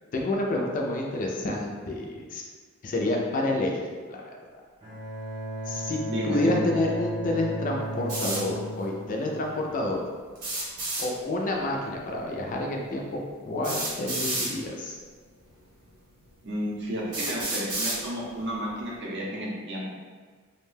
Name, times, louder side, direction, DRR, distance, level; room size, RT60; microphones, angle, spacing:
voice 1, 0.1-2.4 2.8-3.8 4.1-4.2 4.5-4.6 5.7-6.0 6.2-10.0 11.0-13.2 13.4-15.0, left 2 dB, 35° left, 0 dB, 0.3 m, -28 dB
Bowed string instrument, 4.8-9.8, right 1 dB, 20° right, 0.8 m, -35 dB
voice 2, 6.1-6.6 16.4-19.8, equal, 50° right, -4 dB, 0.6 m, -32 dB
sound 1, 8.1-8.4 10.4-11.1 12.5-12.6 13.6-14.5 15.5-15.6 16.3-16.4 17.1-18.0, right 2 dB, 85° right, 0.9 m, -30 dB
2.6 x 2.2 x 3.2 m, 1.5 s
head